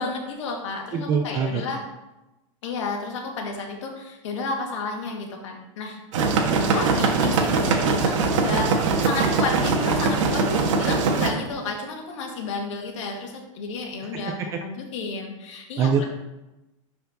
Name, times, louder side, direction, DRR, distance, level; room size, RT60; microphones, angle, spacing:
voice 1, 0.0-1.8 2.6-6.0 6.7-8.7 9.0-16.0, left 3 dB, 65° left, 1 dB, 2.1 m, -32 dB
voice 2, 0.9-1.6 14.5-14.6 15.8-16.0, right 6 dB, 20° right, 5 dB, 0.3 m, -23 dB
sound 1, 6.1-11.3, right 4 dB, 70° right, 1.4 m, -22 dB
11.5 x 4.5 x 4.0 m, 0.99 s
supercardioid pair, 175°, 17 cm